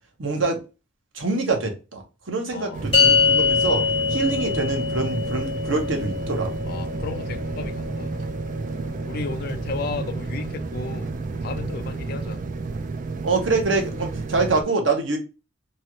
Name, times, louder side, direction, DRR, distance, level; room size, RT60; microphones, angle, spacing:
voice 1, 0.2-0.6 1.1-3.8 4.1-6.5 13.2-15.2, right 3 dB, 90° right, 1.0 m, -25 dB
voice 2, 2.5-2.9 6.6-8.2 9.0-11.1 11.4-12.4, left 4 dB, 50° left, 0.4 m, -33 dB
sound 1, 2.7-14.6, right 3 dB, 45° right, 0.4 m, -31 dB
sound 2, 2.9-9.5, left 5 dB, 30° left, 1.1 m, -25 dB
sound 3, 7.8-7.9 8.2-8.3 8.6-10.0 10.2-10.3 10.7-12.3, left 2 dB, 65° right, 1.5 m, -50 dB
3.1 x 2.5 x 2.8 m
head